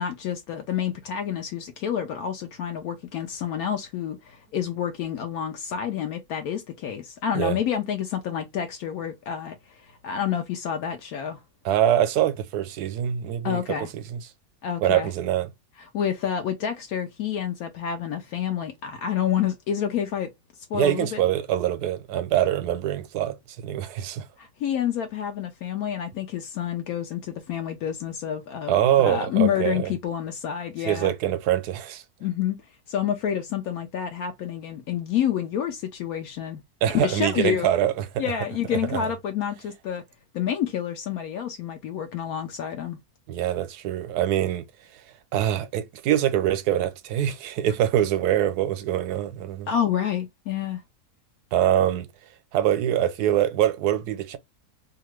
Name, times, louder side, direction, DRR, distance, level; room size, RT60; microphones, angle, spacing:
voice 1, 0.0-11.4 13.4-13.9 14.6-15.1 15.8-20.3 20.7-21.2 24.4-31.1 32.2-32.6 32.9-36.6 36.9-37.7 38.2-40.0 40.3-43.0 49.7-50.8, left 9 dB, 75° left, 1.0 m, -28 dB
voice 2, 11.6-13.6 13.9-14.2 14.8-15.5 20.7-24.3 28.7-29.9 30.8-32.0 36.8-38.2 38.7-39.1 43.3-44.6 44.9-45.0 45.3-49.7 51.5-52.1 52.5-54.4, right 11 dB, 90° right, 1.1 m, -24 dB
2.8 x 2.3 x 3.0 m
omnidirectional pair, 1.6 m